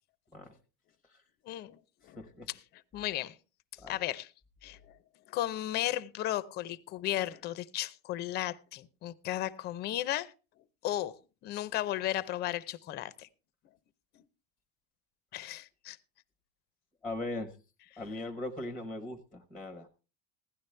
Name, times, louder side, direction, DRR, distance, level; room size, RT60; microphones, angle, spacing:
voice 1, 1.5-2.3 2.9-3.4 3.9-4.3 4.6-5.0 5.3-10.3 10.8-13.3 14.1-14.2 15.3-16.0, left 14 dB, 35° left, 0.6 m, -35 dB
voice 2, 2.0-2.5 3.8-4.0 17.0-17.6 18.0-19.9, left 2 dB, ahead, 0.9 m, -39 dB
16.0 x 11.5 x 3.3 m
cardioid pair, 165°, 30 cm